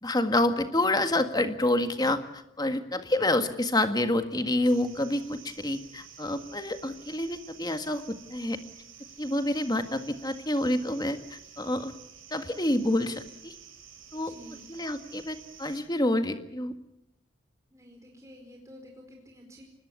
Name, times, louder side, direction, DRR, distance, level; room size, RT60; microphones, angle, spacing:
voice 1, 0.0-8.6 9.2-11.9 12.3-13.5 14.1-14.3 14.7-16.7, left 1 dB, 20° left, 8 dB, 1.7 m, -28 dB
sound 1, 4.6-15.8, right 7 dB, 80° right, 5.9 m, -50 dB
voice 2, 14.3-14.7 17.7-19.6, equal, 15° right, 1 dB, 4.6 m, -50 dB
25.0 x 20.5 x 8.4 m, 0.80 s
head